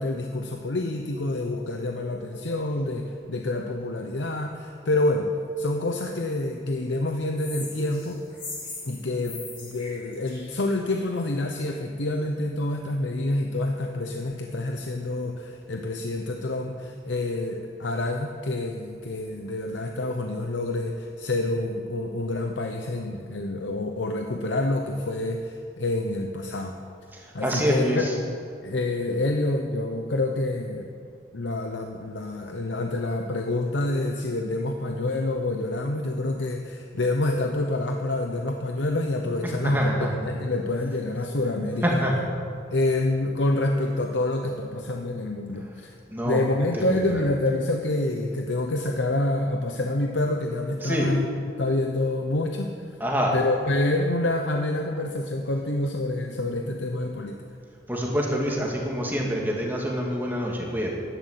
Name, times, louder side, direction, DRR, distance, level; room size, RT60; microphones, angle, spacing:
voice 1, 0.0-5.3 5.6-8.2 8.8-26.8 27.3-28.0 28.6-30.9 31.3-39.9 40.2-42.0 42.7-45.9 46.2-51.3 51.6-53.0 53.3-57.4, left 2 dB, 85° left, 3 dB, 0.9 m, -27 dB
sound 1, 7.4-11.2, left 3 dB, 30° left, 3.0 m, -40 dB
voice 2, 27.1-28.1 39.6-40.1 41.8-42.1 46.1-46.4 46.9-47.2 50.8-51.1 53.0-53.3 57.9-60.9, equal, 10° right, -2 dB, 2.2 m, -26 dB
11.5 x 11.0 x 8.2 m, 2.3 s
head